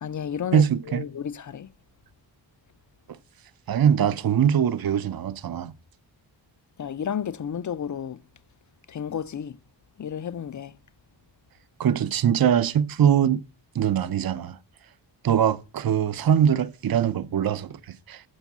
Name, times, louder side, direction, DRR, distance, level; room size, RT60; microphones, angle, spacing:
voice 1, 0.0-1.7 6.8-8.2 8.9-9.5 10.0-10.7, left 8 dB, 40° left, 0.5 m, -32 dB
voice 2, 0.5-1.1 3.7-5.7 11.8-13.4 13.7-14.6 15.2-17.8 18.1-18.2, right 9 dB, 50° right, 0.6 m, -22 dB
7.1 x 6.2 x 7.2 m
wide cardioid pair, 180°, 46 cm